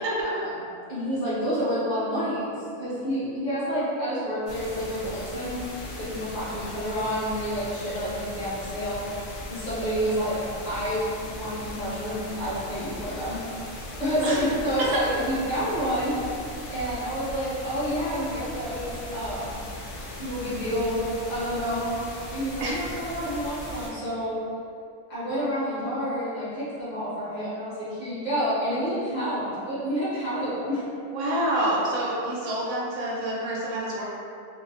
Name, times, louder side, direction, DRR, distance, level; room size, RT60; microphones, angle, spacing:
voice 1, 0.9-2.5 2.8-5.6 6.0-9.0 9.5-13.4 14.0-16.1 16.7-19.5 20.2-21.0 21.3-22.0 22.3-24.3 25.1-30.8, equal, 40° left, -11 dB, 0.8 m, -29 dB
sound 1, 4.5-23.9, left 1 dB, 75° left, 0.9 m, -38 dB
voice 2, 31.1-34.0, right 1 dB, 85° right, -5 dB, 1.0 m, -27 dB
2.6 x 2.0 x 2.6 m, 2.5 s
omnidirectional pair, 1.4 m